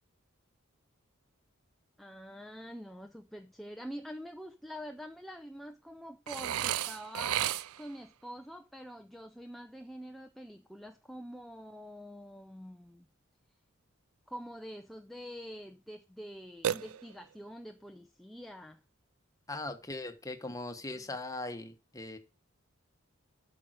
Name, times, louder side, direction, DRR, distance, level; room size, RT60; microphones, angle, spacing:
voice 1, 2.0-13.1 14.3-18.8 21.0-21.1, equal, ahead, 0.5 m, -46 dB
Burping eructation, 6.3-8.0 16.6-17.4, right 11 dB, 90° right, 0.4 m, -33 dB
voice 2, 19.5-22.2, left 2 dB, 15° left, 1.2 m, -40 dB
8.4 x 6.4 x 6.3 m
head